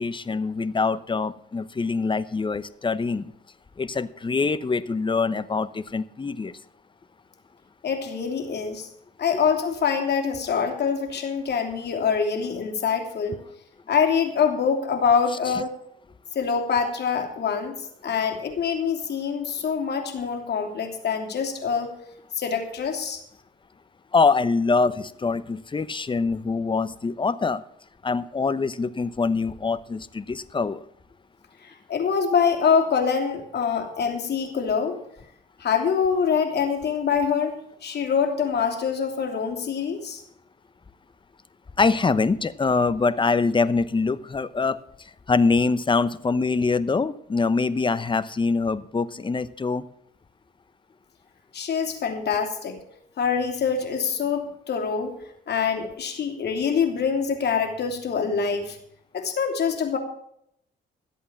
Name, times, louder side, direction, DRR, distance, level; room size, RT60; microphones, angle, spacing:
voice 1, 0.0-3.3 3.8-6.5 24.1-27.6 28.0-30.8 41.8-44.8 45.3-49.8, left 4 dB, 25° left, 15 dB, 0.9 m, -24 dB
voice 2, 7.8-8.9 9.2-13.4 13.9-15.7 16.3-17.7 18.0-21.9 22.3-23.2 31.6-35.0 35.6-37.6 37.8-40.2 51.5-52.8 53.2-55.1 55.5-58.8 59.1-60.0, left 6 dB, 55° left, 4 dB, 3.0 m, -25 dB
13.5 x 8.3 x 7.2 m, 0.72 s
cardioid pair, 90°, 20 cm